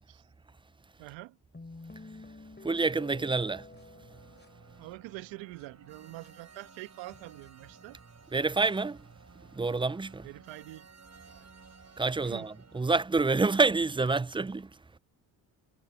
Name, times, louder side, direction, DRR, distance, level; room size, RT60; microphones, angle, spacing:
voice 1, 1.0-1.4 4.8-8.0 10.2-10.9 11.3-11.5 12.2-12.5, right 20 dB, 80° right, 1.3 m, -45 dB
sound 1, 1.5-5.2 5.6-5.7 6.2-6.3 7.1-7.5, left 3 dB, 25° left, 6.1 m, -49 dB
voice 2, 2.6-3.7 8.3-9.0 9.5-10.3 12.0-14.7, right 3 dB, 10° right, 0.5 m, -27 dB
sound 2, 3.7-12.8, right 5 dB, 35° right, 7.5 m, -55 dB
hypercardioid pair, 50°, 45 cm